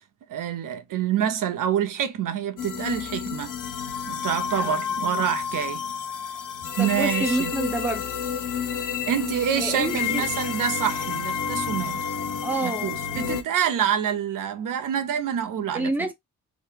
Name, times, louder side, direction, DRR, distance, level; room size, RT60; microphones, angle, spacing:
voice 1, 0.3-3.5 4.1-5.8 6.8-7.5 9.1-12.1 12.6-15.9, right 9 dB, 85° right, 0.6 m, -27 dB
sound 1, 2.6-13.4, left 7 dB, 80° left, 0.6 m, -30 dB
voice 2, 4.5-5.0 6.8-8.1 9.6-10.3 12.4-13.0 15.7-16.1, right 2 dB, 5° right, 0.8 m, -28 dB
2.9 x 2.1 x 3.2 m
cardioid pair, 65°, 32 cm